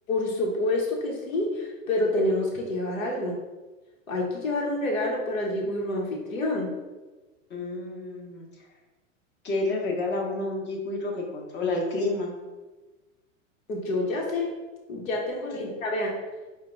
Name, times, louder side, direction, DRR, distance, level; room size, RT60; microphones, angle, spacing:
voice 1, 0.1-3.4 4.1-6.7 13.7-14.5 14.9-16.2, left 1 dB, 85° left, -1 dB, 1.0 m, -28 dB
voice 2, 7.5-8.5 9.4-12.3, left 2 dB, 30° left, 1 dB, 0.9 m, -29 dB
4.7 x 2.2 x 3.6 m, 1.2 s
hypercardioid pair, 105°, 39 cm